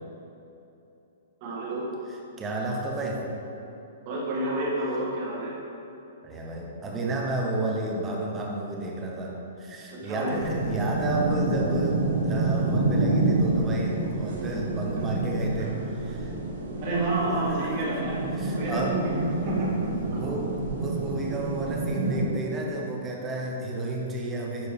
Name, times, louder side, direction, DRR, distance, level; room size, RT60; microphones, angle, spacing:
voice 1, 1.4-1.8 4.0-5.5 9.9-10.4 16.8-18.2 18.5-19.7 20.1-20.4, right 2 dB, 30° right, -4 dB, 1.4 m, -29 dB
voice 2, 2.4-3.3 6.2-16.3 17.3-18.0 18.4-19.0 19.3-19.5 19.9-24.7, right 2 dB, 10° right, -1 dB, 0.6 m, -32 dB
sound 1, 10.3-22.3, right 2 dB, 65° right, 1.4 m, -28 dB
9.9 x 4.5 x 3.4 m, 2.9 s
hypercardioid pair, 180°, 0 cm